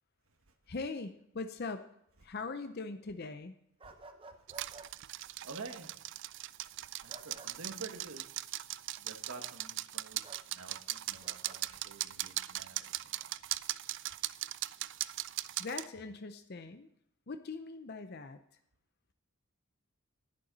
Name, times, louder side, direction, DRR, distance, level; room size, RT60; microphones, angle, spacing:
voice 1, 0.7-1.9 2.2-3.5 15.6-16.9 17.3-18.4, left 3 dB, 45° left, 8 dB, 0.6 m, -41 dB
sound 1, 3.8-4.9 7.1-7.5 10.2-10.4 11.2-11.6, right 2 dB, 25° right, 0.7 m, -52 dB
voice 2, 4.4-4.9 5.4-6.0 7.0-8.3 9.0-13.3, right 3 dB, 75° right, 5 dB, 1.3 m, -49 dB
sound 2, 4.5-15.9, right 15 dB, 55° right, 0.3 m, -39 dB
10.5 x 10.5 x 4.0 m, 0.74 s
head